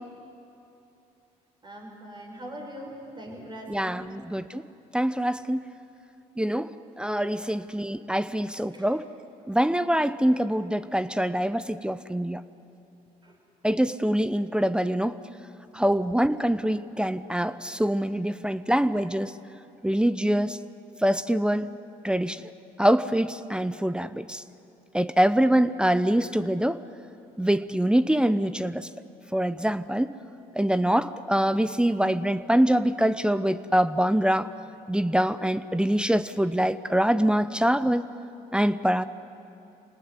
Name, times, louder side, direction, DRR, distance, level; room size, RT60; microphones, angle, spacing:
voice 1, 1.6-4.0 7.3-7.5 8.7-8.9 13.2-13.3, equal, 30° right, 0 dB, 6.7 m, -42 dB
voice 2, 3.7-4.6 4.9-5.6 6.4-6.7 7.0-9.0 9.5-12.4 13.6-15.2 15.7-19.3 19.8-20.6 21.0-21.7 22.0-22.4 22.8-24.4 24.9-26.8 27.4-28.9 29.3-30.1 30.5-34.5 34.9-38.0 38.5-39.0, equal, 5° right, 14 dB, 0.8 m, -24 dB
26.5 x 19.0 x 9.8 m, 2.8 s
supercardioid pair, 70°, 16 cm